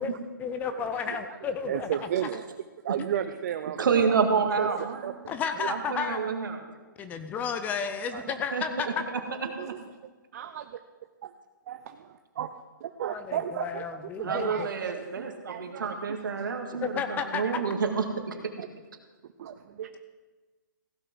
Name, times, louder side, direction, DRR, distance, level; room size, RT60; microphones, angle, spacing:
voice 1, 0.0-2.1 5.3-6.2 7.0-9.0 13.1-14.7 16.8-17.4, left 6 dB, 15° left, 8 dB, 0.6 m, -32 dB
voice 2, 0.7-1.2 1.7-2.5 2.8-4.0 4.6-5.1 5.6-5.7 8.1-8.2 9.6-9.8 10.3-10.8 11.2-11.3 11.7-16.8 18.6-18.7 19.4-20.0, right 10 dB, 50° right, 9 dB, 0.5 m, -34 dB
voice 3, 3.8-5.1 5.6-6.6 8.5-8.6 9.1-9.2 14.2-18.4, right 5 dB, 75° right, 5 dB, 1.8 m, -28 dB
15.5 x 5.8 x 6.1 m, 1.3 s
hypercardioid pair, 145°, 11 cm